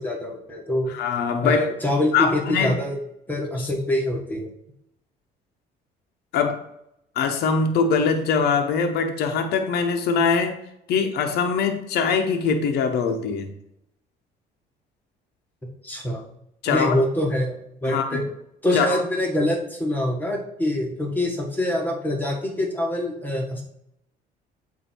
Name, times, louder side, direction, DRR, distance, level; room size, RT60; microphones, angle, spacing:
voice 1, 0.0-0.9 1.4-3.0 3.3-4.5 15.8-16.2 16.7-18.2 18.6-23.6, left 1 dB, 10° left, 0 dB, 1.4 m, -25 dB
voice 2, 0.9-1.7 2.1-2.8 6.3-6.6 7.2-10.6 10.9-13.5 16.6-17.0 17.8-18.2 18.7-19.0, left 5 dB, 75° left, 5 dB, 0.8 m, -22 dB
8.1 x 2.7 x 4.4 m, 0.78 s
cardioid pair, 110°, 17 cm